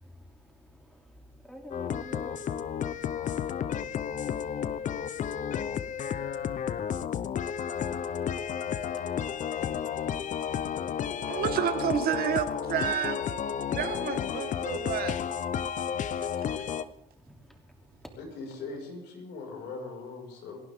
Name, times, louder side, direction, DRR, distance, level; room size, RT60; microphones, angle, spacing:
voice 1, 0.4-1.0 1.4-2.6 17.1-17.6, left 1 dB, ahead, 2 dB, 3.0 m, -47 dB
sound 1, 1.7-16.8, left 8 dB, 50° left, 0.8 m, -32 dB
voice 2, 11.3-15.2 16.2-16.3, right 10 dB, 65° right, 11 dB, 1.4 m, -30 dB
voice 3, 18.2-20.6, left 3 dB, 80° left, 1 dB, 5.7 m, -40 dB
28.5 x 12.0 x 3.7 m, 0.80 s
cardioid pair, 110°, 17 cm